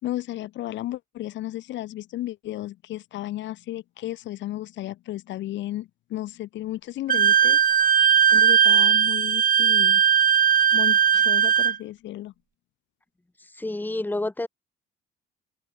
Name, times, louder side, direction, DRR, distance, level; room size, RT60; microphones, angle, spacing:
voice 1, 0.0-10.0 10.7-12.3, left 14 dB, 75° left, 3.7 m, -34 dB
Wind instrument woodwind instrument, 7.1-11.8, right 8 dB, 45° right, 2.1 m, -18 dB
voice 2, 13.4-14.5, left 2 dB, 10° left, 2.4 m, -29 dB
open air
cardioid pair, 85°, 19 cm